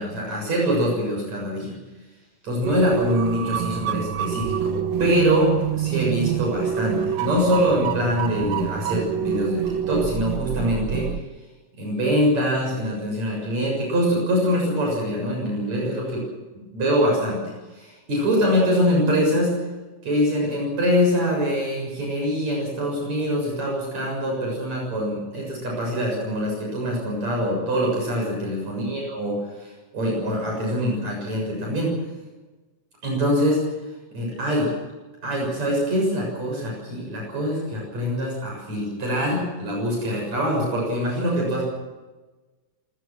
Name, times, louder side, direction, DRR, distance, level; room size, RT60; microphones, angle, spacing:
voice 1, 0.0-1.7 2.4-11.1 11.8-16.3 16.5-17.4 17.7-19.5 20.0-31.9 33.0-33.7 34.1-34.7 35.2-41.6, equal, 50° right, -1 dB, 8.2 m, -24 dB
sound 1, 2.6-11.2, right 9 dB, 70° right, 1.8 m, -26 dB
26.5 x 20.0 x 6.2 m, 1.2 s
omnidirectional pair, 3.9 m